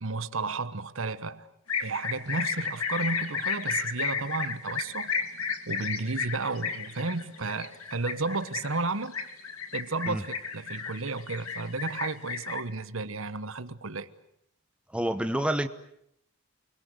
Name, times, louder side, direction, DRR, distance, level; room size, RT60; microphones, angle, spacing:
voice 1, 0.0-1.5 1.8-5.1 5.7-9.2 9.7-14.1, right 3 dB, 65° right, 1.2 m, -33 dB
sound 1, 1.7-12.6, left 6 dB, 90° left, 2.4 m, -33 dB
voice 2, 14.9-15.7, right 1 dB, 5° right, 1.0 m, -28 dB
29.5 x 22.0 x 8.0 m
head